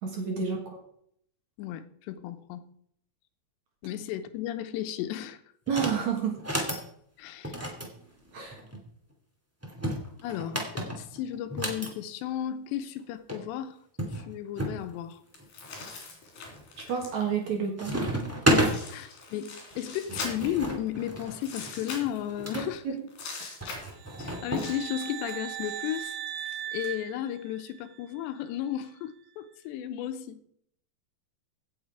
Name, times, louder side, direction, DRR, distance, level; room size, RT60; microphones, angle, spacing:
voice 1, 0.0-0.6 5.7-6.4 8.3-8.6 16.9-18.0 22.6-23.0, right 6 dB, 55° right, 2.2 m, -30 dB
voice 2, 1.6-2.7 3.8-5.4 7.2-7.6 10.2-13.8 14.1-15.2 18.9-22.8 24.2-26.2 26.7-30.4, left 11 dB, 90° left, 3.0 m, -34 dB
sound 1, 5.7-6.0 6.4-6.8 7.4-8.8 9.6-11.9 13.0-13.1 13.3-13.4 14.0-14.8 15.3-15.8 16.4-16.8 17.1-17.5 17.8-18.7 19.7-22.7 23.6-24.7, equal, 20° right, 0.4 m, -31 dB
sound 2, 15.3-17.4 18.2-18.3 18.5-20.9 21.4-22.7 23.1-26.9, left 4 dB, 60° left, 4.6 m, -42 dB
sound 3, 24.0-28.0, right 11 dB, 75° right, 2.6 m, -39 dB
16.5 x 7.1 x 4.8 m
omnidirectional pair, 4.9 m